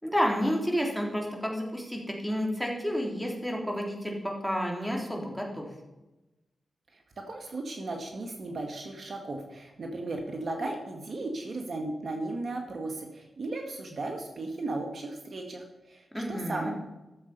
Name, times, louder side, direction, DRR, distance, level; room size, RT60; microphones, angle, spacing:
voice 1, 0.0-5.7 16.1-16.7, equal, ahead, 0 dB, 3.6 m, -30 dB
voice 2, 6.9-16.7, right 2 dB, 60° right, 3 dB, 1.8 m, -36 dB
14.0 x 7.4 x 5.4 m, 1.0 s
cardioid pair, 50°, 0 cm